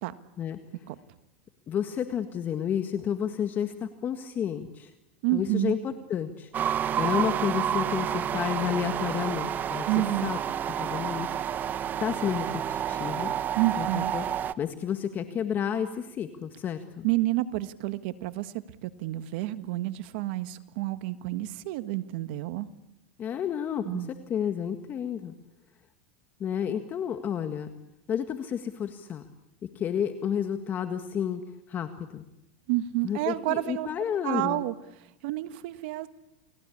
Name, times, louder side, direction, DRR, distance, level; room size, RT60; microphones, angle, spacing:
voice 1, 1.7-4.9 5.3-6.5 6.9-9.9 10.2-10.4 10.7-11.7 12.0-13.3 13.8-14.2 14.6-17.1 23.2-25.3 26.4-27.7 28.1-29.2 29.6-31.4 31.7-32.2 33.0-34.6, left 8 dB, 30° left, 8 dB, 1.8 m, -31 dB
voice 2, 5.2-5.8 9.9-10.3 13.5-14.1 17.0-18.5 18.8-22.7 23.8-24.1 32.7-33.9 34.2-36.1, right 16 dB, 65° right, 12 dB, 1.5 m, -29 dB
sound 1, 6.5-14.5, right 10 dB, 30° right, 0.9 m, -30 dB
30.0 x 20.5 x 8.6 m, 0.90 s
supercardioid pair, 125°, 6 cm